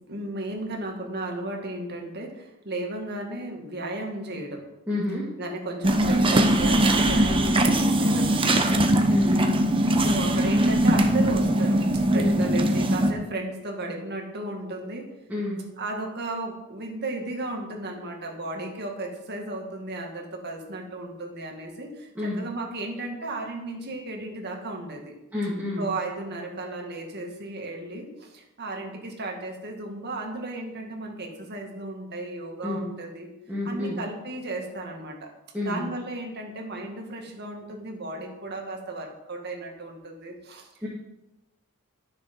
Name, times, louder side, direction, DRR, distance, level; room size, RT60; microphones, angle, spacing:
voice 1, 0.1-4.7 5.4-9.2 9.9-11.8 12.1-15.1 15.8-25.2 25.8-33.3 33.6-35.3 35.6-40.7, right 2 dB, 50° right, 1 dB, 2.0 m, -34 dB
voice 2, 4.9-5.3 9.1-9.5 12.1-12.3 15.3-15.6 22.2-22.4 25.3-25.9 32.6-32.8 33.5-34.0 35.5-35.8 40.8-40.9, left 2 dB, 10° right, -7 dB, 2.1 m, -29 dB
sound 1, 5.8-13.1, right 1 dB, 25° right, 0.9 m, -21 dB
12.5 x 6.8 x 5.4 m, 0.96 s
head